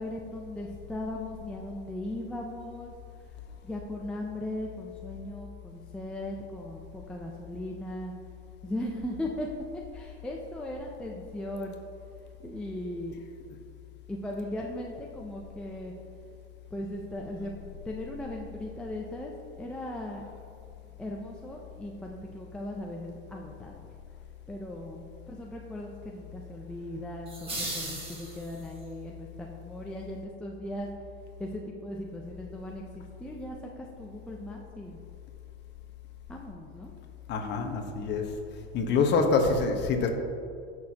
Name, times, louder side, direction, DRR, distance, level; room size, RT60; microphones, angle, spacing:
voice 1, 0.0-2.9 3.6-8.1 8.6-9.5 9.7-11.8 12.4-13.2 14.1-15.9 16.7-19.3 19.6-20.2 21.0-23.9 24.5-30.9 31.4-35.0 36.3-36.9, left 1 dB, 5° left, -1 dB, 0.5 m, -38 dB
sound 1, 27.3-28.8, right 1 dB, 15° right, 1.7 m, -37 dB
voice 2, 37.3-38.3 38.7-40.1, left 4 dB, 35° left, 3 dB, 1.1 m, -25 dB
16.0 x 6.2 x 2.8 m, 2.5 s
supercardioid pair, 135°, 32 cm